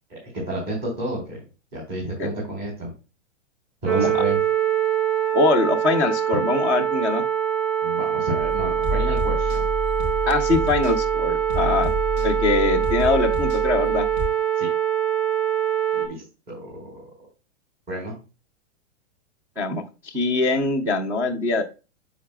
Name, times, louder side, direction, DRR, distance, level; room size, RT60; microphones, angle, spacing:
voice 1, 0.1-1.4 1.7-2.9 3.8-4.4 7.8-9.7 14.6-14.7 15.9-17.0 17.9-18.2, right 1 dB, 25° right, -4 dB, 3.7 m, -31 dB
sound 1, 3.9-16.1, right 9 dB, 80° right, 3.1 m, -24 dB
voice 2, 5.3-7.2 10.3-11.9 12.2-14.0 19.6-21.6, left 3 dB, 5° right, 1 dB, 0.3 m, -22 dB
sound 2, 8.4-14.3, equal, 50° right, 4.5 m, -29 dB
14.0 x 4.8 x 2.2 m, 0.31 s
hypercardioid pair, 150°, 36 cm